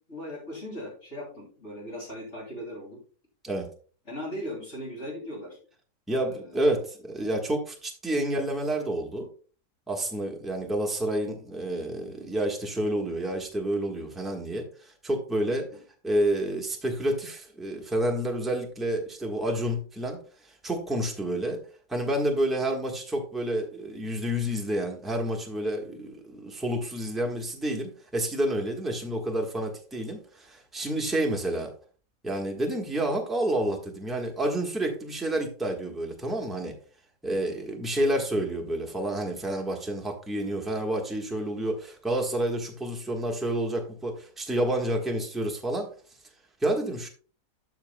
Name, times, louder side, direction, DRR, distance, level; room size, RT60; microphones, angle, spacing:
voice 1, 0.1-3.0 4.0-5.6 6.1-6.6, equal, 40° left, -3 dB, 3.1 m, -38 dB
voice 2, 6.1-9.3 9.9-15.7 16.0-21.6 21.9-31.7 32.2-36.7 37.2-45.9 46.6-47.1, right 1 dB, ahead, 0 dB, 1.1 m, -29 dB
12.5 x 5.9 x 2.2 m, 0.41 s
omnidirectional pair, 1.8 m